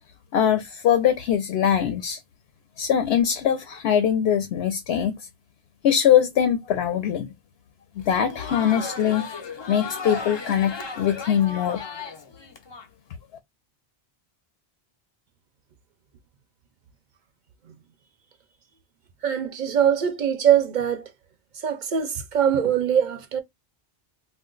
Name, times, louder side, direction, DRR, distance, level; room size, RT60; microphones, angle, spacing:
voice 1, 0.3-2.2 2.8-5.2 5.8-7.3 8.0-9.2 9.7-11.8, left 9 dB, 85° left, 0.8 m, -22 dB
Crowd, 8.0-12.9, left 4 dB, 40° left, 0.4 m, -35 dB
voice 2, 19.2-21.1 21.6-23.4, right 9 dB, 55° right, 0.7 m, -22 dB
2.4 x 2.1 x 3.7 m
omnidirectional pair, 1.0 m